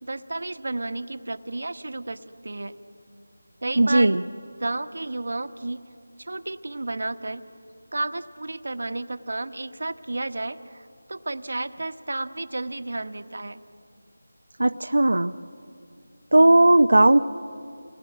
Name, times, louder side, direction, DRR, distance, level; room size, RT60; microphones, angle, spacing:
voice 1, 0.0-2.7 3.6-4.1 4.6-5.9 6.2-7.4 7.9-13.6, right 2 dB, 60° right, 9 dB, 1.2 m, -32 dB
voice 2, 3.8-4.2 14.6-15.3 16.3-17.2, right 2 dB, 75° right, 8 dB, 0.6 m, -17 dB
29.0 x 20.5 x 9.4 m, 2.4 s
figure-of-eight pair, 175°, 0 cm